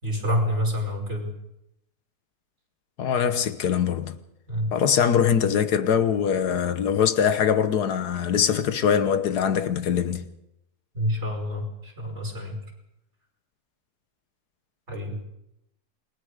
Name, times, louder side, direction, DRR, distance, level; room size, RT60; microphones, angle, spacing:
voice 1, 0.0-1.3 4.5-4.7 10.9-12.6 14.9-15.2, equal, 45° right, 5.8 m, -27 dB
voice 2, 3.0-4.2 4.7-10.2, left 8 dB, 85° left, 1.7 m, -22 dB
28.0 x 21.5 x 5.0 m
omnidirectional pair, 1.7 m